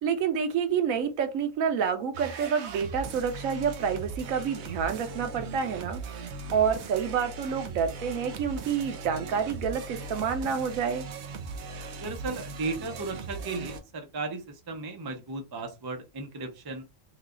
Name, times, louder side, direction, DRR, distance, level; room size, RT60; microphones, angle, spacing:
voice 1, 0.0-6.0 6.5-11.0, right 7 dB, 85° right, 1.1 m, -28 dB
sound 1, 2.1-13.8, right 4 dB, 65° right, 0.8 m, -39 dB
voice 2, 12.0-14.4 14.7-16.8, right 3 dB, 35° right, 0.3 m, -35 dB
3.2 x 2.3 x 3.7 m
omnidirectional pair, 1.4 m